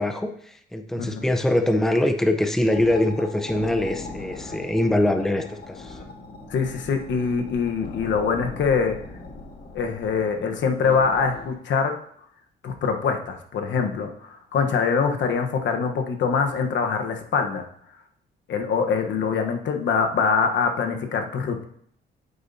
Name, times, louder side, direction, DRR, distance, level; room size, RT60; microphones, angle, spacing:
voice 1, 0.0-6.0, left 1 dB, ahead, 6 dB, 0.7 m, -23 dB
sound 1, 2.7-11.5, left 3 dB, 50° left, 1.8 m, -40 dB
voice 2, 6.5-9.0 9.7-11.9 12.6-17.7 18.5-21.6, left 5 dB, 65° left, 4 dB, 1.2 m, -24 dB
8.6 x 8.0 x 2.8 m, 0.66 s
cardioid pair, 90°, 20 cm